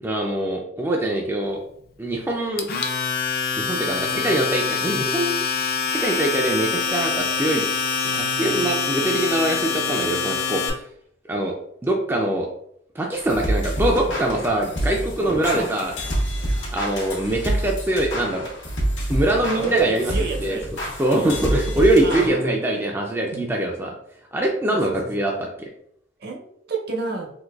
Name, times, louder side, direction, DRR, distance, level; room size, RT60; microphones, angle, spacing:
voice 1, 0.0-1.6 2.0-2.7 3.6-5.4 5.9-7.7 8.1-10.7 11.3-11.5 11.8-12.5 13.0-15.9 16.7-18.5 19.1-20.1 20.4-20.6 21.0-23.9 24.3-25.7, right 1 dB, 10° right, 0 dB, 0.3 m, -23 dB
Domestic sounds home sounds, 2.6-10.7, left 5 dB, 55° left, 0.4 m, -25 dB
sound 1, 13.1-22.3, right 1 dB, 75° left, 0.9 m, -27 dB
voice 2, 19.5-20.7 22.0-22.5 23.3-23.5 24.7-25.2 26.2-27.3, right 5 dB, 55° right, 1 dB, 0.7 m, -29 dB
3.8 x 2.6 x 2.3 m, 0.69 s
head